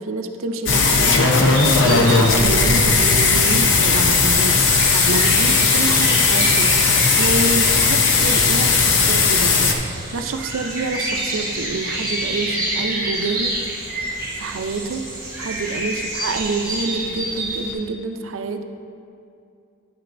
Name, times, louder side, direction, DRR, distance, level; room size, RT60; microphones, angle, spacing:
voice 1, 0.0-1.4 1.8-13.6 14.4-15.1 15.4-18.6, right 3 dB, 85° right, 7 dB, 0.5 m, -27 dB
sound 1, 0.7-9.7, left 4 dB, 65° left, 0.7 m, -16 dB
sound 2, 1.5-17.7, right 1 dB, 20° right, 2.2 m, -28 dB
10.0 x 9.1 x 2.6 m, 2.5 s
head